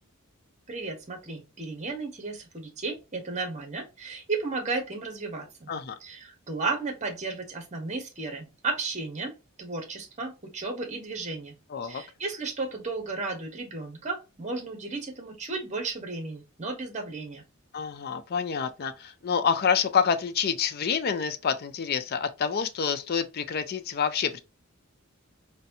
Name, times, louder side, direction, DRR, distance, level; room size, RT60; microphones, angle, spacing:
voice 1, 0.7-5.7 6.0-11.5 11.8-17.4, right 3 dB, 30° right, 0.9 m, -34 dB
voice 2, 11.7-12.0 17.7-24.4, left 6 dB, 45° left, 0.4 m, -27 dB
4.0 x 2.2 x 2.6 m
head